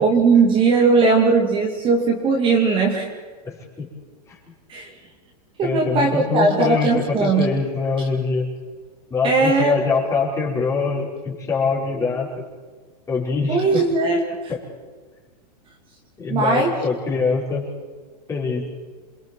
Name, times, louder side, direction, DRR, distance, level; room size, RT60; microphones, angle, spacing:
voice 1, 0.0-3.1 4.7-4.9 5.6-7.5 9.2-9.8 13.5-14.2 16.3-16.7, right 4 dB, 25° right, 1 dB, 2.7 m, -18 dB
voice 2, 3.4-3.9 4.3-4.4 5.6-8.5 9.1-12.4 13.1-13.8 14.5-14.6 16.2-17.7 18.3-18.6, left 4 dB, 15° left, -4 dB, 5.0 m, -24 dB
28.0 x 23.0 x 4.7 m, 1.4 s
hypercardioid pair, 145°, 21 cm